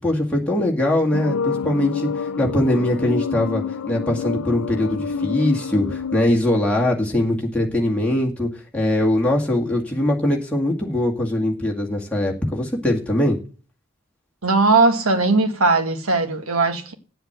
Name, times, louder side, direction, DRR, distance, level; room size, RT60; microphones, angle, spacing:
voice 1, 0.0-13.4, left 1 dB, 5° left, 2.1 m, -21 dB
sound 1, 1.1-6.2, left 5 dB, 90° left, 0.5 m, -27 dB
voice 2, 14.4-16.9, right 3 dB, 80° right, 1.7 m, -18 dB
8.9 x 7.8 x 7.8 m
head